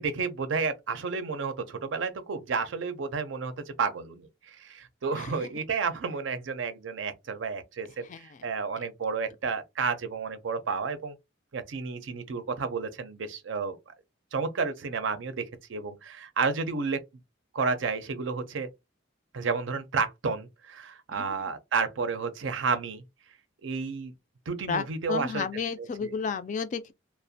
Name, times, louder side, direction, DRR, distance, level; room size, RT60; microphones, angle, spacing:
voice 1, 0.0-3.5 3.8-11.1 11.5-13.8 14.3-17.0 17.5-18.7 19.3-23.0 23.6-24.1 24.5-25.5 26.0-26.1, right 5 dB, 80° right, 0.5 m, -31 dB
voice 2, 5.2-5.5 8.0-8.4 21.1-21.5 24.7-26.9, left 5 dB, 40° left, 0.3 m, -33 dB
2.4 x 2.1 x 2.6 m
head